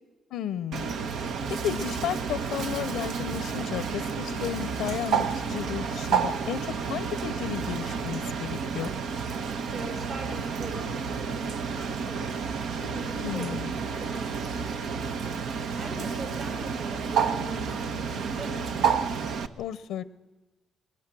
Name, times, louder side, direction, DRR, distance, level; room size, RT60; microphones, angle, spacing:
voice 1, 0.3-1.0 1.5-8.9 13.2-13.7 19.6-20.0, left 10 dB, 90° left, 14 dB, 0.7 m, -33 dB
Bird, 0.7-19.5, right 6 dB, 75° right, 1.1 m, -30 dB
voice 2, 9.7-13.4 13.8-15.4 15.8-18.9, right 2 dB, 55° right, 2 dB, 7.3 m, -42 dB
22.5 x 22.0 x 7.6 m, 1.1 s
cardioid pair, 90°, 0 cm